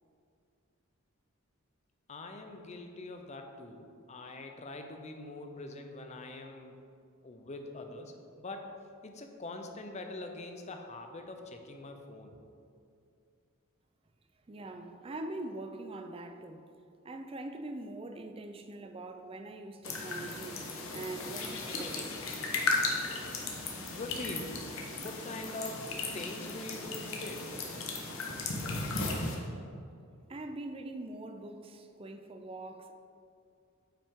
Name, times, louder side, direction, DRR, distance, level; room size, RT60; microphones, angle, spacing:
voice 1, 2.1-6.8 7.2-8.7 9.0-12.4 23.9-24.6 25.0-27.5, left 2 dB, 30° left, 4 dB, 0.6 m, -43 dB
voice 2, 14.5-16.6 17.0-22.2 30.3-32.9, right 2 dB, 25° right, 6 dB, 0.4 m, -43 dB
sound 1, 19.8-29.4, left 3 dB, 75° left, 1.1 m, -36 dB
8.8 x 5.6 x 3.7 m, 2.5 s
head